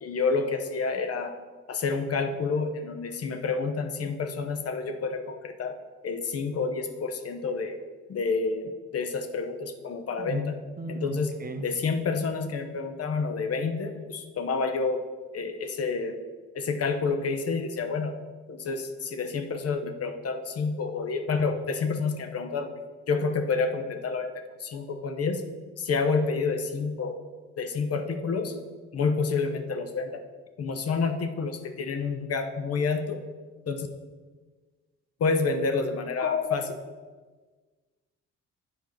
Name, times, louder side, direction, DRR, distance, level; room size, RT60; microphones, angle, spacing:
voice 1, 0.0-1.3 1.7-5.8 6.0-7.8 8.1-10.5 10.9-11.3 11.6-15.0 15.3-16.2 16.5-18.1 18.5-22.7 23.1-24.3 24.6-25.4 25.8-27.2 27.6-28.6 28.9-30.1 30.6-33.2 33.7-33.9 35.2-36.7, left 4 dB, 55° left, 7 dB, 0.9 m, -29 dB
voice 2, 10.8-11.7, right 1 dB, 30° right, 6 dB, 0.8 m, -35 dB
8.3 x 4.5 x 6.4 m, 1.4 s
cardioid pair, 90°, 30 cm